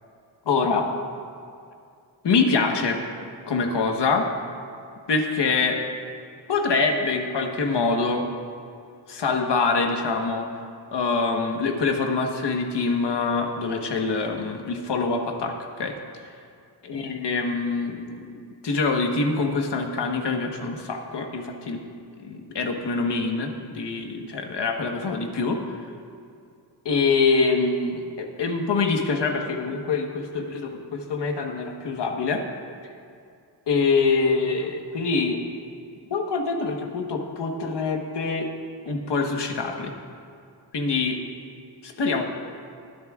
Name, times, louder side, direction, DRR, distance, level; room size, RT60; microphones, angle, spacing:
voice 1, 0.5-0.9 2.2-3.0 3.5-4.3 5.1-5.8 6.5-8.3 9.1-10.5 10.9-15.5 15.8-15.9 16.9-21.8 22.2-25.6 26.8-32.4 33.7-35.4 36.1-38.5 38.8-39.9 40.7-41.2 41.8-42.2, left 4 dB, 80° left, 3 dB, 1.3 m, -25 dB
22.0 x 10.5 x 2.4 m, 2.4 s
wide cardioid pair, 125°, 41 cm